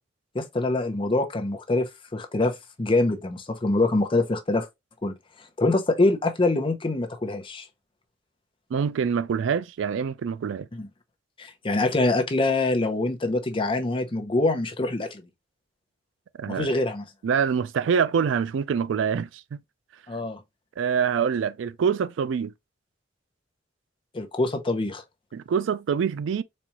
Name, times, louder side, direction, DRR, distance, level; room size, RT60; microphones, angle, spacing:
voice 1, 0.3-4.7 5.0-5.1 5.6-7.7 10.7-10.9 11.4-15.2 16.5-17.1 20.1-20.4 24.1-25.0, left 2 dB, 30° left, 0.6 m, -25 dB
voice 2, 8.7-10.7 16.4-16.7 17.2-19.6 20.8-22.5 25.3-26.4, right 6 dB, 85° right, 0.3 m, -25 dB
4.2 x 2.3 x 2.9 m
head